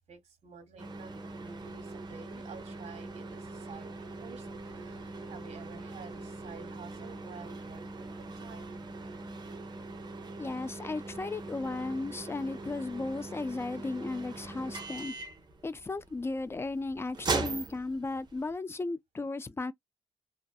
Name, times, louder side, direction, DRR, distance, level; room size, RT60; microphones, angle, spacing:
voice 1, 0.1-8.8, right 6 dB, 55° right, 1.3 m, -51 dB
sound 1, 0.8-18.5, right 3 dB, 35° right, 0.8 m, -41 dB
voice 2, 10.4-15.1 15.6-19.7, left 3 dB, 20° left, 0.3 m, -35 dB
2.6 x 2.2 x 2.3 m
cardioid pair, 90°, 13 cm